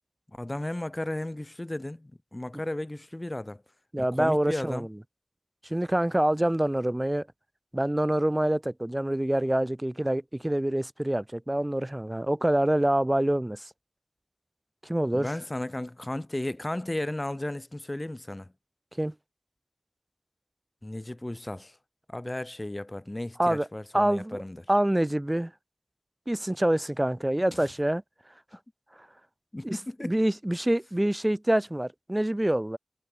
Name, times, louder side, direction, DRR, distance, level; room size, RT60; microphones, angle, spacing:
voice 1, 0.3-3.6 4.0-4.9 15.1-18.5 20.8-21.7 22.1-24.6 29.5-30.1, left 1 dB, 30° left, 1.3 m, -34 dB
voice 2, 3.9-4.9 5.6-7.3 7.7-13.7 14.8-15.3 19.0-19.1 23.4-23.7 23.9-24.4 24.7-25.5 26.3-28.0 29.6-32.8, right 1 dB, 20° right, 1.6 m, -26 dB
wide cardioid pair, 55°, 0 cm